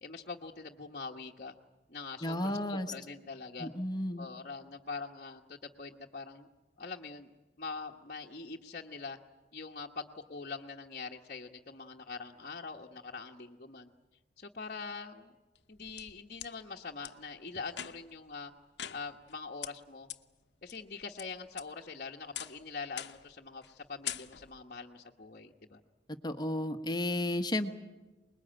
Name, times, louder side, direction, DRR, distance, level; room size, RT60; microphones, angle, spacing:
voice 1, 0.0-1.5 1.9-3.7 4.2-6.5 6.8-7.3 7.6-9.2 9.5-13.9 14.4-15.3 15.7-18.5 18.9-20.1 20.6-25.8, left 4 dB, 50° left, -2 dB, 1.2 m, -43 dB
voice 2, 2.2-2.9 3.6-4.3 26.2-27.7, left 1 dB, 25° left, 7 dB, 1.3 m, -33 dB
sound 1, 15.5-16.5 17.0-17.1 17.7-18.2 18.8-19.3 19.6-19.7 20.1-20.2 20.7-21.2 21.6-22.0 22.3-22.6 23.0-23.3 23.6-23.8 24.0-24.6, left 11 dB, 75° left, 1.0 m, -42 dB
25.5 x 21.5 x 8.9 m, 1.2 s
head